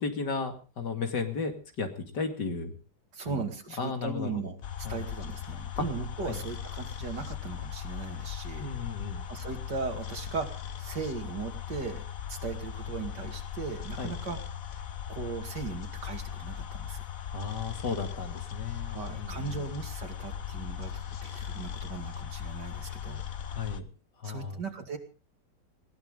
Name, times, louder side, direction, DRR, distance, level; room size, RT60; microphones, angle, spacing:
voice 1, 0.0-1.5 1.8-2.7 3.2-3.4 3.8-4.5 4.8-5.0 5.8-5.9 6.3-6.4 8.6-9.3 14.0-14.1 17.3-19.6 23.4-23.9 24.2-24.6, left 4 dB, 75° left, 6 dB, 2.9 m, -34 dB
voice 2, 3.1-8.7 9.3-12.0 12.3-14.4 15.1-17.0 18.9-23.2 24.2-25.0, right 5 dB, 75° right, 5 dB, 2.9 m, -38 dB
sound 1, 4.6-23.8, left 9 dB, 55° left, 1.4 m, -38 dB
20.0 x 17.0 x 3.8 m, 0.35 s
omnidirectional pair, 1.9 m